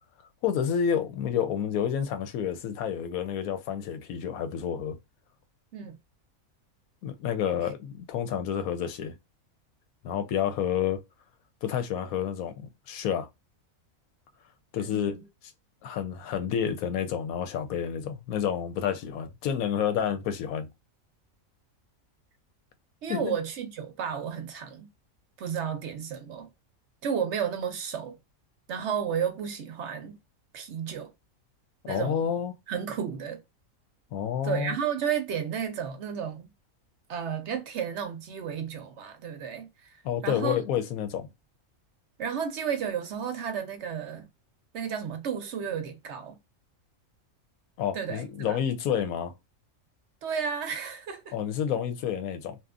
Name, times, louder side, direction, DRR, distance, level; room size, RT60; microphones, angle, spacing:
voice 1, 0.4-5.0 7.0-9.2 10.0-11.0 11.6-13.3 14.7-15.2 15.8-20.7 23.1-23.3 31.8-32.6 34.1-34.7 40.0-41.3 47.8-49.3 51.3-52.6, left 8 dB, 90° left, 1.1 m, -29 dB
voice 2, 14.8-15.2 23.0-24.9 25.4-26.5 27.0-28.2 28.7-30.2 30.5-31.1 31.9-32.3 32.7-33.4 34.4-36.5 37.1-40.6 42.2-44.3 44.7-46.4 47.9-48.6 50.2-51.3, right 7 dB, 65° right, 0.8 m, -32 dB
2.8 x 2.4 x 2.3 m
omnidirectional pair, 1.4 m